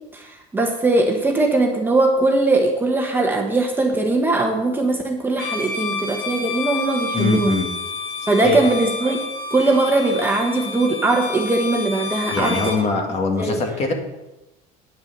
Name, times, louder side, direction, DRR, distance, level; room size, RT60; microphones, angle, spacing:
voice 1, 0.1-7.6 8.3-9.2 9.5-12.8 13.4-13.6, right 2 dB, 10° right, 1 dB, 1.3 m, -20 dB
Bowed string instrument, 5.3-12.8, left 3 dB, 70° left, 1.8 m, -30 dB
voice 2, 7.1-7.7 8.4-8.7 12.3-13.9, left 4 dB, 40° left, 3 dB, 2.1 m, -22 dB
9.5 x 6.9 x 6.8 m, 0.99 s
cardioid pair, 135°, 17 cm